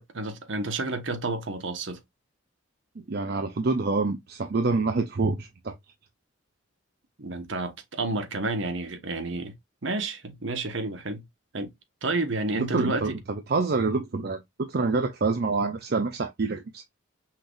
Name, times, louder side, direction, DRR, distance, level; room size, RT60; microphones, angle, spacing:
voice 1, 0.0-2.0 7.2-9.5 9.8-11.2 11.5-11.7 12.0-13.2, right 2 dB, 65° right, 1.1 m, -30 dB
voice 2, 3.1-5.7 12.6-16.8, right 3 dB, 50° right, 0.5 m, -27 dB
5.7 x 3.3 x 2.5 m
head